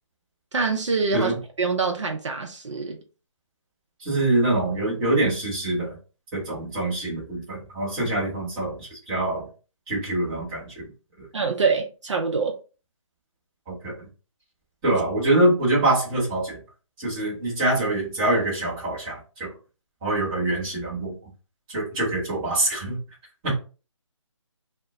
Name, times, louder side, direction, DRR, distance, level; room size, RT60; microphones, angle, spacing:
voice 1, 0.5-3.0 11.3-12.5, right 4 dB, 65° right, 0.6 m, -25 dB
voice 2, 4.0-6.0 6.3-9.5 9.9-10.8 11.2-11.3 13.7-13.9 14.8-16.6 17.0-19.5 20.0-21.1 21.7-23.0 23.4-23.6, right 2 dB, 15° right, 1.0 m, -24 dB
2.1 x 2.1 x 3.6 m
figure-of-eight pair, 160°, 17 cm